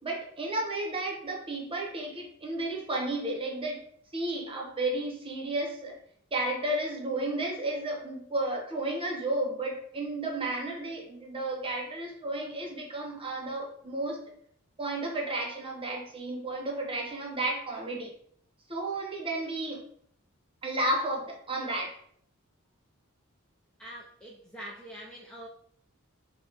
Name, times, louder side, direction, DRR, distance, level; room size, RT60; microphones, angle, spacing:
voice 1, 0.0-3.8 4.1-6.0 6.3-14.2 14.8-18.1 18.7-19.8 20.6-22.0, right 2 dB, 25° right, 0 dB, 0.8 m, -32 dB
voice 2, 23.8-25.5, equal, 5° left, -4 dB, 0.3 m, -44 dB
5.3 x 2.2 x 2.8 m, 0.64 s
head